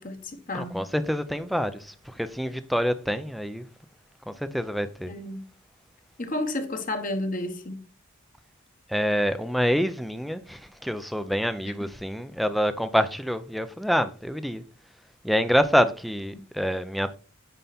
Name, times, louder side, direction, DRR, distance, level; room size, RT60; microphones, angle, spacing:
voice 1, 0.0-0.8 5.0-5.4 6.2-7.8 11.6-11.7, left 1 dB, 40° left, 1.3 m, -32 dB
voice 2, 0.5-3.7 4.3-5.1 8.9-14.6 15.2-17.2, equal, ahead, 0.5 m, -26 dB
9.1 x 5.4 x 4.3 m
head